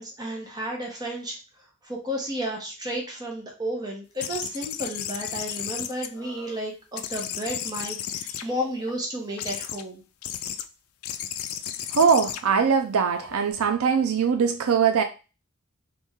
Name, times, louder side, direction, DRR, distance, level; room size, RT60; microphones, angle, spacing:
voice 1, 0.0-1.4 1.8-10.0, equal, 20° right, 1.1 m, -32 dB
sound 1, 4.2-6.6 7.0-8.9 9.4-9.8 10.2-10.6 11.0-13.5, left 10 dB, 70° left, 0.4 m, -34 dB
voice 2, 11.9-15.0, right 6 dB, 75° right, 0.5 m, -21 dB
3.2 x 2.6 x 3.5 m
head